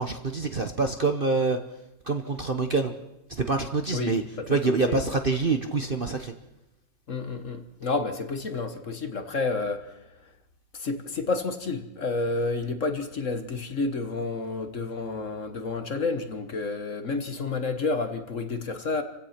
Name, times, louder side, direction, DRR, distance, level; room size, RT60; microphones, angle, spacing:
voice 1, 0.0-1.6 2.1-2.9 3.3-6.3, right 3 dB, 35° right, 6 dB, 1.0 m, -26 dB
voice 2, 3.9-5.0 7.1-10.1 10.7-19.0, left 3 dB, 45° left, 8 dB, 1.5 m, -30 dB
28.5 x 16.0 x 5.9 m, 0.92 s
omnidirectional pair, 1.9 m